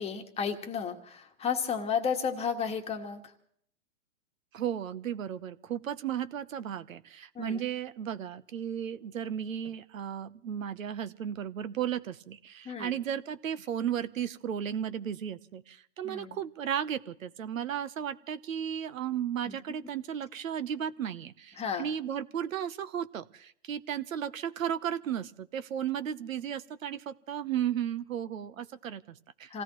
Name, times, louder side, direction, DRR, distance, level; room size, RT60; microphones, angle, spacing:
voice 1, 0.0-3.3 7.3-7.6 12.6-12.9 16.0-16.4 19.4-19.8 21.6-21.9 29.5-29.6, left 6 dB, 15° left, 5 dB, 1.5 m, -33 dB
voice 2, 4.5-29.5, right 9 dB, 75° right, 14 dB, 0.9 m, -34 dB
28.0 x 16.5 x 3.1 m, 0.66 s
hypercardioid pair, 130°, 40 cm